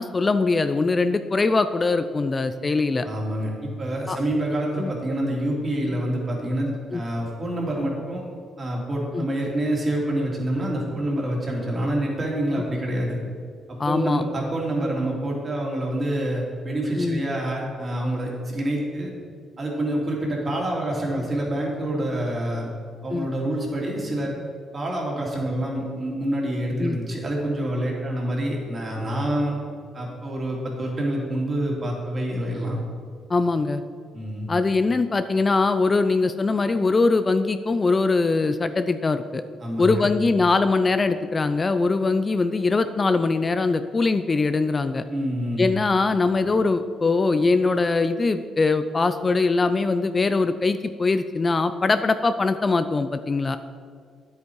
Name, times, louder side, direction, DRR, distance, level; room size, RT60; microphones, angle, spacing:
voice 1, 0.0-3.1 4.1-4.2 4.8-4.9 6.9-7.0 7.4-7.5 9.1-9.3 13.8-14.2 17.0-17.2 23.1-23.3 26.8-27.0 33.3-33.8 34.5-39.4 39.8-45.0 45.6-53.6, left 3 dB, 30° left, 11 dB, 0.4 m, -22 dB
voice 2, 3.0-8.2 8.6-13.2 13.7-19.1 19.6-22.7 23.0-24.4 24.7-29.6 29.9-32.8 34.1-34.5 39.6-40.1 45.1-45.7, right 1 dB, 35° right, -2 dB, 2.9 m, -27 dB
9.8 x 8.2 x 4.7 m, 2.1 s
cardioid pair, 90°, 0 cm